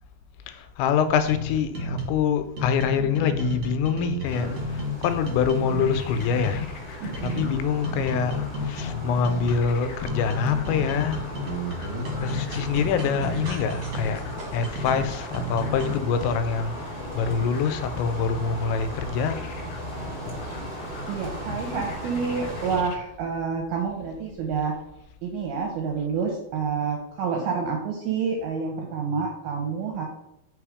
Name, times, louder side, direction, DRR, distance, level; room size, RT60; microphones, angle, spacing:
voice 1, 0.5-14.2 14.5-19.6, left 6 dB, 90° left, 2.9 m, -26 dB
sound 1, 1.3-2.2 2.6-6.7 7.1-9.7 10.1-15.9, left 1 dB, 65° right, 1.5 m, -31 dB
sound 2, 4.2-22.8, equal, 35° left, 2.1 m, -38 dB
sound 3, 5.5-23.0, left 4 dB, 75° left, 2.5 m, -40 dB
voice 2, 7.0-7.6 21.1-24.7 25.2-30.1, right 5 dB, 80° right, 2.3 m, -28 dB
6.2 x 3.5 x 4.8 m
omnidirectional pair, 5.1 m